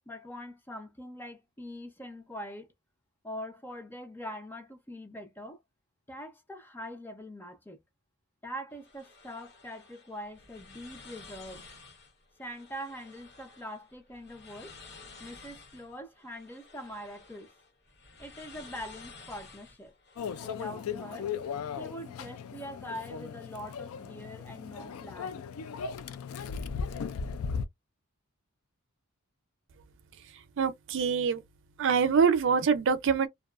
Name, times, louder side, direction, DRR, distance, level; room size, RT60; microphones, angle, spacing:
voice 1, 0.1-2.7 3.2-5.6 6.1-7.8 8.4-11.7 12.4-14.8 15.2-17.5 18.2-19.9 20.4-21.3 21.8-25.4, equal, 10° left, 0.5 m, -43 dB
sound 1, 8.7-20.5, left 4 dB, 55° left, 1.2 m, -52 dB
Microwave oven, 20.2-27.6, left 6 dB, 75° left, 0.4 m, -37 dB
voice 2, 30.2-31.4 31.8-33.3, right 6 dB, 60° right, 0.5 m, -25 dB
2.5 x 2.3 x 2.4 m
head